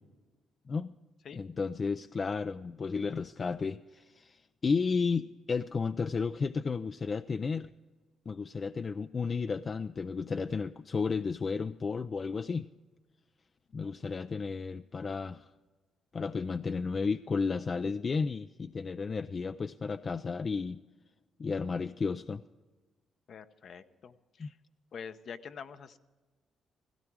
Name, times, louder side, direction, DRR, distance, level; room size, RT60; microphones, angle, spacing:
voice 1, 1.3-7.7 8.3-12.7 13.7-15.5 16.1-20.8 21.4-22.4 24.4-24.5, left 5 dB, 40° left, 11 dB, 0.4 m, -33 dB
voice 2, 23.3-24.6 24.9-26.0, left 6 dB, 60° left, 10 dB, 0.8 m, -46 dB
16.5 x 16.0 x 4.7 m, 1.3 s
cardioid pair, 90°, 0 cm